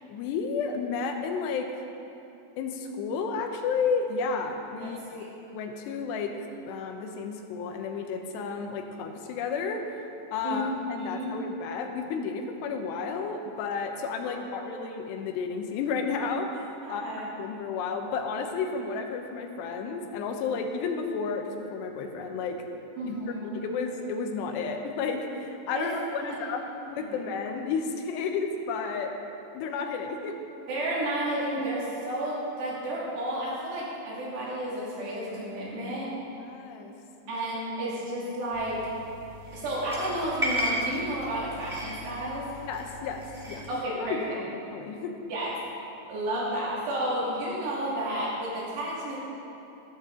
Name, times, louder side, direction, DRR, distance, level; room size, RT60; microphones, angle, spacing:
voice 1, 0.1-1.7 2.6-6.3 6.7-9.9 10.3-22.6 23.1-29.1 29.5-30.3 36.3-36.9 37.3-37.5 42.7-43.7 44.0-44.4 44.7-45.2, left 5 dB, 85° left, 4 dB, 3.1 m, -32 dB
voice 2, 4.8-5.3 10.4-10.7 11.0-11.3 14.2-14.8 16.8-17.2 23.0-23.6 25.7-25.9 26.2-26.4 27.0-27.2 30.7-36.1 37.3-38.8 39.5-42.5 43.7-44.3 45.3-45.5 46.1-49.2, right 1 dB, 80° right, -7 dB, 5.1 m, -32 dB
sound 1, 38.5-43.7, equal, 25° right, 0.6 m, -35 dB
14.0 x 13.0 x 3.8 m, 2.8 s
omnidirectional pair, 4.8 m